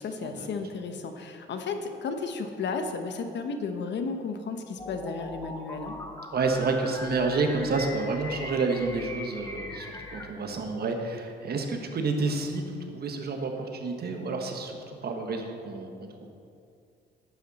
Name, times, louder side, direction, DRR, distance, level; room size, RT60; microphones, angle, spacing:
voice 1, 0.0-6.0, left 4 dB, 65° left, 6 dB, 1.0 m, -33 dB
sound 1, 4.8-10.3, left 2 dB, 15° left, 1.2 m, -40 dB
voice 2, 6.3-12.6 12.9-16.3, right 3 dB, 50° right, 4 dB, 1.3 m, -29 dB
11.0 x 8.5 x 4.2 m, 2.4 s
cardioid pair, 90°, 20 cm